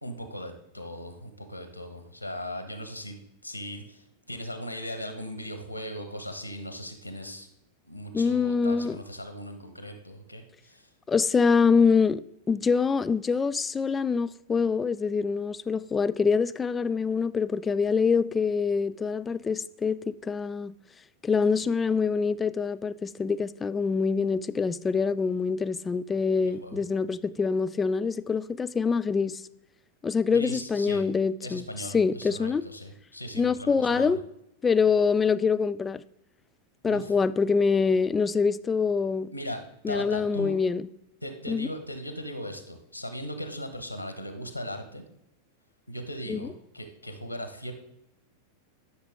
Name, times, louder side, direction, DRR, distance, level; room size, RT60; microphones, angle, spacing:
voice 1, 0.0-3.2 3.4-7.5 7.9-10.9 26.6-26.8 30.3-31.0 31.4-34.1 36.9-37.1 39.3-40.6 41.2-45.0 45.9-47.7, equal, 90° right, 1.0 m, -38 dB
voice 2, 8.1-9.0 11.1-12.2 12.5-20.7 21.2-29.4 30.0-32.6 33.3-34.2 34.6-36.0 36.8-39.3 39.8-40.9 41.5-41.7 46.3-46.5, left 5 dB, 15° left, 0.3 m, -25 dB
11.5 x 5.9 x 3.6 m
figure-of-eight pair, 90°, 0 cm